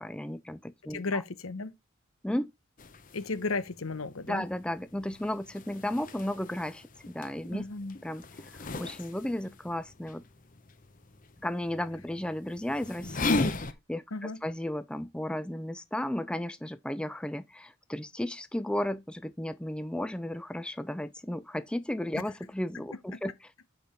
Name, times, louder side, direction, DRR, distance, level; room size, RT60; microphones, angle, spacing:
voice 1, 0.0-1.2 2.2-2.5 4.3-7.6 8.0-8.2 8.5-10.2 11.4-13.4 13.9-23.3, left 1 dB, 5° left, 0.4 m, -34 dB
voice 2, 0.9-1.7 3.1-4.4 7.5-7.9 14.1-14.4, left 3 dB, 90° left, 1.0 m, -34 dB
sound 1, 2.8-13.7, left 3 dB, 40° left, 0.9 m, -37 dB
7.9 x 5.3 x 4.3 m
head